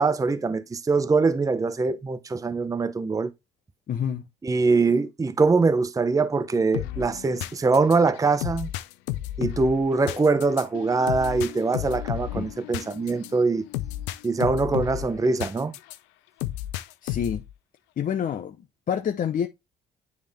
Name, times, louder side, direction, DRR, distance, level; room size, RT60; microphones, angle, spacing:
voice 1, 0.0-3.3 4.4-8.7 9.4-13.6 14.2-15.7, right 4 dB, 20° right, 0.7 m, -23 dB
voice 2, 3.9-4.3 12.3-12.5 17.0-17.4 18.0-19.5, left 8 dB, 50° left, 0.8 m, -28 dB
sound 1, 6.7-16.0 16.4-17.5, left 15 dB, 85° left, 0.5 m, -33 dB
9.6 x 3.5 x 3.4 m
supercardioid pair, 70°, 18 cm